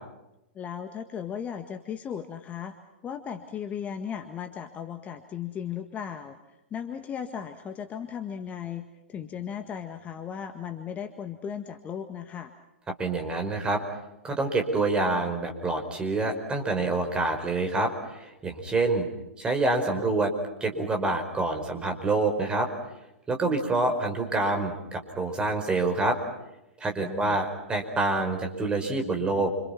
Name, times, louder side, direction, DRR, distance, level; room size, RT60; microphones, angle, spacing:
voice 1, 0.5-2.8 3.0-6.4 6.7-12.5 27.0-27.4, left 8 dB, 20° left, 6 dB, 1.7 m, -36 dB
voice 2, 13.0-13.8 14.2-19.1 19.4-20.3 20.6-22.7 23.3-26.2 26.8-29.5, right 2 dB, 15° right, 4 dB, 5.1 m, -27 dB
29.0 x 27.0 x 5.9 m, 0.92 s
figure-of-eight pair, 110°, 7 cm